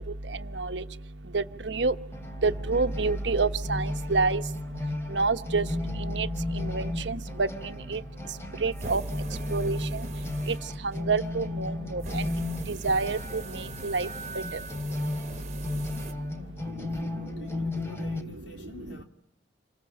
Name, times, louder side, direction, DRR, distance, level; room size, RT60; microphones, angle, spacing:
sound 1, 2.1-18.2, left 2 dB, 15° left, 3.1 m, -35 dB
voice 1, 2.4-3.8 4.1-4.4 5.1-5.6 6.1-6.3 6.7-7.2 8.6-9.0 9.5-9.8 11.1-12.0 12.8-13.2 13.8-14.1, right 3 dB, 75° right, 1.1 m, -26 dB
sound 2, 8.7-11.1 12.0-16.1, right 3 dB, 40° right, 1.7 m, -43 dB
Wind instrument woodwind instrument, 12.9-16.3, right 3 dB, 35° left, 5.7 m, -46 dB
voice 2, 16.4-19.0, left 2 dB, 80° left, 3.3 m, -48 dB
27.5 x 22.0 x 8.6 m
head